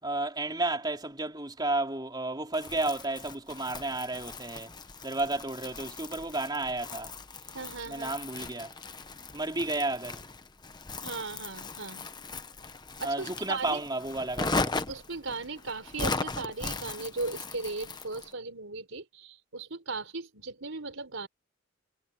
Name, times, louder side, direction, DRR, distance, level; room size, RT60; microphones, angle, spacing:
voice 1, 0.0-4.7 5.0-7.1 7.9-8.7 9.3-10.2 13.0-14.8, right 2 dB, 20° right, 3.5 m, -32 dB
Crumpling crinkling, 2.5-18.3, left 3 dB, 20° left, 1.0 m, -38 dB
voice 2, 7.5-8.2 11.0-12.1 13.0-13.8 14.9-21.3, right 3 dB, 75° right, 4.3 m, -37 dB
head